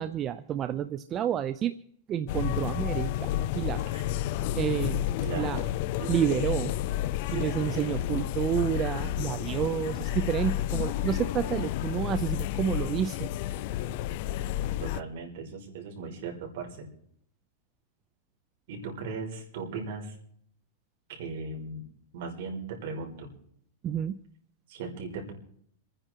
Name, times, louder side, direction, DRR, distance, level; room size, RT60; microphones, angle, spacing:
voice 1, 0.0-1.7 2.1-3.9 4.6-5.7 6.1-6.7 7.3-13.3 23.8-24.2, right 9 dB, 25° right, 12 dB, 0.6 m, -30 dB
sound 1, 2.3-15.0, left 12 dB, 50° left, 0.6 m, -31 dB
voice 2, 5.2-5.6 6.0-6.2 7.3-7.8 14.8-16.9 18.7-20.2 21.1-21.9 22.1-23.3 24.7-25.3, right 4 dB, 60° right, 1 dB, 5.4 m, -38 dB
27.5 x 10.0 x 4.6 m, 0.64 s
supercardioid pair, 150°, 0 cm